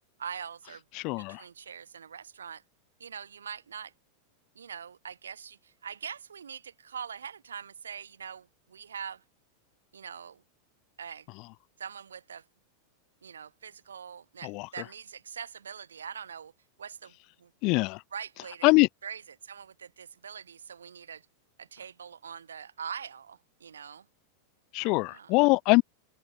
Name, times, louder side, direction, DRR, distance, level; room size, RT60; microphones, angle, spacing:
voice 1, 0.2-0.8 1.2-2.6 3.0-3.9 4.5-9.2 9.9-10.4 11.0-11.3 11.8-12.4 13.2-16.5 16.8-17.5 18.1-18.7 19.0-21.3 21.6-24.1 24.8-25.3, right 7 dB, 70° right, 6.2 m, -43 dB
voice 2, 0.9-1.4 14.4-14.7 17.6-18.0 18.6-18.9 24.7-25.8, left 27 dB, 40° left, 0.8 m, -23 dB
open air
figure-of-eight pair, 90°, 0 cm